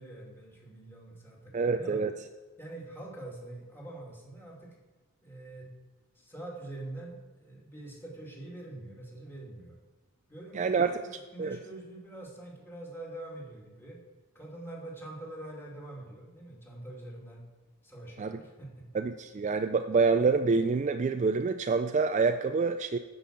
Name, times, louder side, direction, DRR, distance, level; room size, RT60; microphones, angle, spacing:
voice 1, 0.0-2.0 2.6-4.8 5.2-5.7 6.2-9.8 10.3-14.0 14.3-17.4 17.8-18.9, right 2 dB, 10° left, -3 dB, 2.4 m, -45 dB
voice 2, 1.5-2.1 10.5-11.0 11.4-11.6 18.2-18.3 18.9-23.0, right 4 dB, 35° right, 8 dB, 0.3 m, -27 dB
10.0 x 5.4 x 7.4 m, 1.3 s
head